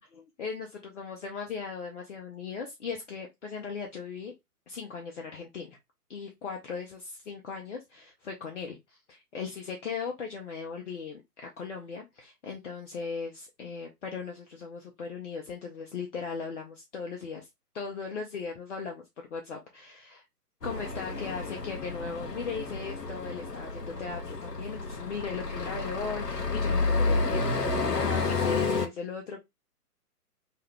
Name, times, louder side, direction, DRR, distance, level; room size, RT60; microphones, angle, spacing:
voice 1, 0.0-4.3 4.7-5.7 6.1-17.5 17.7-19.0 19.3-20.2 20.6-29.4, left 5 dB, 50° left, 0.7 m, -38 dB
sound 1, 20.6-28.9, left 3 dB, 90° left, 0.7 m, -30 dB
2.7 x 2.2 x 3.3 m
figure-of-eight pair, 130°, 47 cm